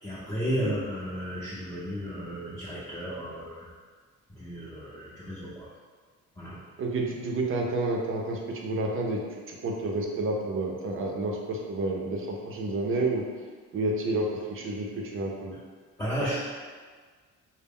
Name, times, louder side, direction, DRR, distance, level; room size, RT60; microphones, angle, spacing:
voice 1, 0.0-3.7 4.3-5.7 6.4-6.6 16.0-16.4, equal, 10° left, -11 dB, 0.6 m, -34 dB
voice 2, 6.8-9.2 9.5-13.2 13.7-15.5, right 2 dB, 45° right, 0 dB, 0.5 m, -30 dB
2.0 x 2.0 x 3.5 m, 1.5 s
cardioid pair, 90°, 30 cm